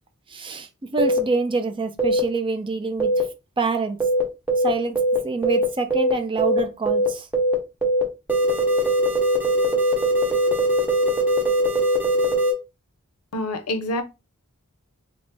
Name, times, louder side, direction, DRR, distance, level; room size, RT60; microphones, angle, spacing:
voice 1, 0.3-3.1 3.6-4.0 4.6-7.3, right 3 dB, 25° right, 0.5 m, -26 dB
sound 1, 1.0-1.2 2.0-2.2 3.0-3.2 4.0-4.2 4.5-4.7 5.0-5.2 5.4-5.6 5.9-6.1 6.4-6.6 6.9-7.1 7.3-7.5 7.8-8.0 8.3-12.5, right 1 dB, 10° right, 1.0 m, -20 dB
voice 2, 13.3-14.0, left 1 dB, 85° left, 0.5 m, -26 dB
3.8 x 2.0 x 3.4 m
head